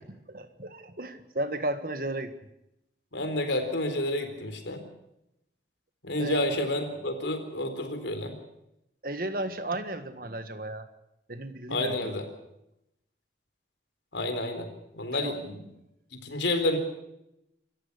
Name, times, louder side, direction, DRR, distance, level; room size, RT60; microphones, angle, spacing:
voice 1, 0.0-2.3 6.2-6.4 9.0-10.9 11.3-12.2 15.2-15.3, right 1 dB, 50° right, 10 dB, 1.7 m, -34 dB
voice 2, 3.1-4.8 6.0-8.4 11.7-12.2 14.1-14.7 14.9-15.6 16.2-16.8, left 1 dB, 85° left, 7 dB, 4.0 m, -29 dB
27.0 x 15.0 x 6.9 m, 0.84 s
head